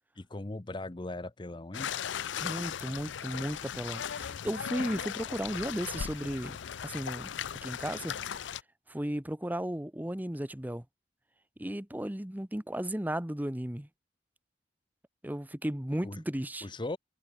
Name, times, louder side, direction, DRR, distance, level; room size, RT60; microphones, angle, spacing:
voice 1, 0.2-1.9 16.0-16.2 16.6-17.0, left 2 dB, 25° left, 0.7 m, -38 dB
sound 1, 1.7-8.6, left 8 dB, 75° left, 0.5 m, -37 dB
voice 2, 2.4-6.6 6.8-7.3 7.6-8.5 8.9-10.8 11.6-13.9 15.2-16.7, right 1 dB, 10° right, 1.0 m, -35 dB
head